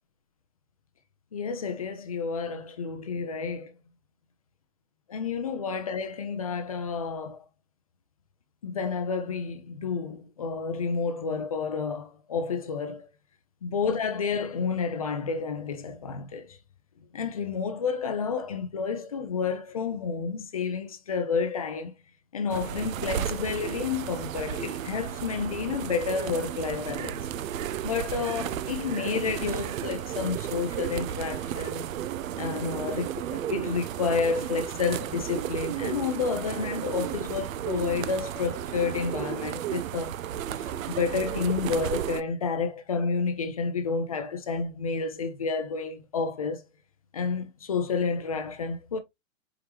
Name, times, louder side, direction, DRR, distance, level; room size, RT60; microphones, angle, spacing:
voice 1, 1.3-3.7 5.1-7.4 8.6-13.1 13.6-16.6 17.1-21.9 22.3-27.3 27.8-31.9 32.4-40.2 40.6-46.6 47.1-49.0, left 5 dB, 30° left, 0.4 m, -30 dB
sound 1, 22.5-42.2, right 10 dB, 75° right, 0.5 m, -33 dB
4.7 x 3.4 x 2.9 m
hypercardioid pair, 165°, 40 cm